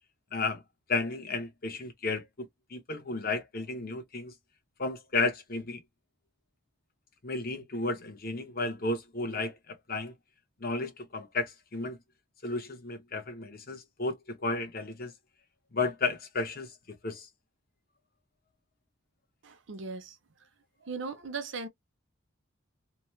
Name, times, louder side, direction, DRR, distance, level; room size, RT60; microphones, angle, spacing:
voice 1, 0.3-0.6 0.9-4.3 4.8-5.8 7.2-10.1 10.6-12.0 12.4-15.1 15.7-16.7 17.0-17.3, left 3 dB, 45° left, 0.9 m, -33 dB
voice 2, 19.4-20.2 20.8-21.7, right 4 dB, 60° right, 0.7 m, -38 dB
2.9 x 2.1 x 3.1 m
head